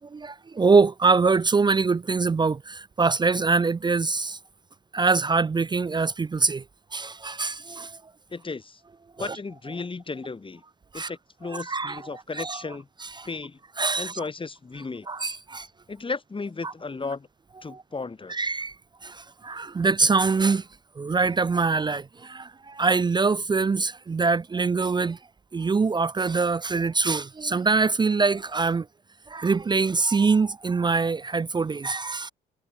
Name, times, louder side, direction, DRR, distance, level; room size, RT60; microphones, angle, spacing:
voice 1, 0.0-4.4 4.9-6.6 6.9-8.0 9.2-9.4 10.9-11.1 11.5-12.6 13.0-13.3 13.8-14.2 15.1-15.7 16.6-16.7 17.7-17.8 18.3-18.7 19.0-20.7 21.0-25.2 25.5-28.9 29.3-32.3, right 4 dB, 20° right, 0.5 m, -24 dB
voice 2, 8.3-8.8 9.2-10.6 10.9-12.9 13.2-13.6 14.0-15.1 15.9-17.3 17.6-18.4, left 4 dB, 25° left, 3.0 m, -35 dB
cardioid pair, 90°, 20 cm